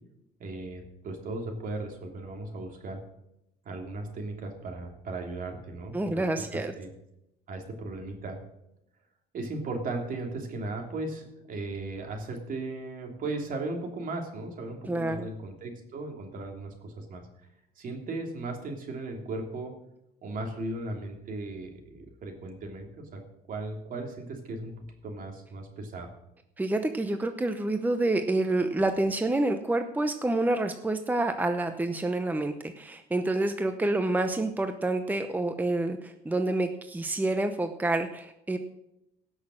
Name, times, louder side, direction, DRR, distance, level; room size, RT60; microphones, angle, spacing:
voice 1, 0.4-3.0 3.6-6.2 6.5-6.9 7.5-8.4 9.3-17.2 17.8-19.7 20.2-23.2 23.5-24.7 25.0-26.1, right 2 dB, 55° right, 2 dB, 3.0 m, -36 dB
voice 2, 5.9-6.7 14.9-15.3 26.6-38.6, right 2 dB, 10° right, 7 dB, 0.8 m, -28 dB
17.5 x 6.5 x 6.3 m, 0.85 s
cardioid pair, 110°, 17 cm